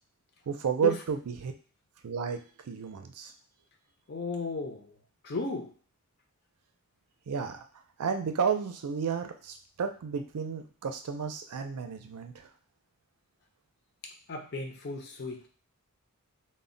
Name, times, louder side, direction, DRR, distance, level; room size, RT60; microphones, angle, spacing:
voice 1, 0.5-1.5 2.0-2.4 2.7-3.3 7.3-7.6 8.0-12.5, right 6 dB, 85° right, 6 dB, 0.4 m, -32 dB
voice 2, 4.1-4.9 5.2-5.7 14.3-15.5, left 3 dB, 45° left, 3 dB, 0.5 m, -34 dB
2.1 x 2.1 x 3.7 m, 0.42 s
head